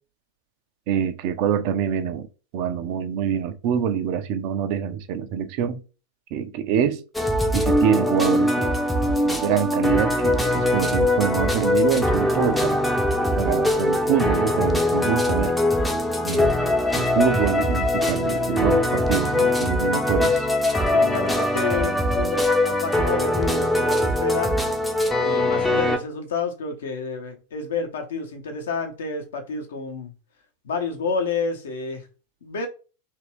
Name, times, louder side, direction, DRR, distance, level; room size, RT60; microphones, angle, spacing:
voice 1, 0.9-2.3 2.5-5.8 6.3-7.0 7.5-8.7 9.2-12.8 13.4-15.5 16.2-16.5 16.9-20.5, right 8 dB, 45° right, 0.4 m, -25 dB
sound 1, 7.1-26.0, left 1 dB, 5° left, 0.5 m, -22 dB
voice 2, 20.9-24.5 25.2-30.1 30.6-32.0 32.4-32.7, left 4 dB, 60° left, 0.8 m, -29 dB
2.9 x 2.5 x 3.1 m
figure-of-eight pair, 90°, 0 cm